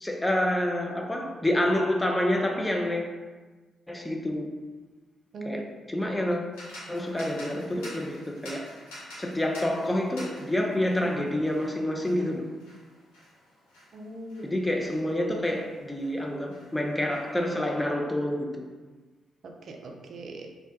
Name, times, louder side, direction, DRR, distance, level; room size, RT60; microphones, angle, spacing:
voice 1, 0.0-3.1 3.9-4.5 5.4-6.5 6.9-8.7 9.2-12.5 14.4-18.7, left 1 dB, 15° left, 0.4 m, -28 dB
voice 2, 5.3-6.1 12.2-12.3 13.9-14.5 19.4-20.5, right 2 dB, 60° right, 0.3 m, -40 dB
sound 1, 6.5-16.2 16.5-17.8, left 1 dB, 85° left, 0.5 m, -48 dB
2.2 x 2.1 x 2.6 m
hypercardioid pair, 40°, 0 cm